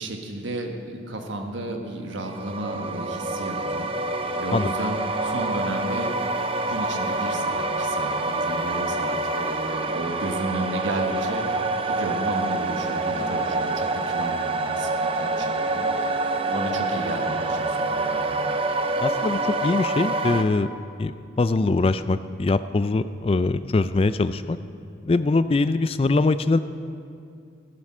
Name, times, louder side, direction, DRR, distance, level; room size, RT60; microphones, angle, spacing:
voice 1, 0.0-3.9 4.4-6.3 6.6-18.4, right 1 dB, 75° right, 3 dB, 1.3 m, -33 dB
sound 1, 2.2-20.4, right 2 dB, 30° right, 0.5 m, -26 dB
voice 2, 19.0-20.7 21.0-24.6 25.1-26.6, left 3 dB, 30° left, 13 dB, 0.3 m, -22 dB
14.0 x 12.5 x 4.3 m, 2.4 s
head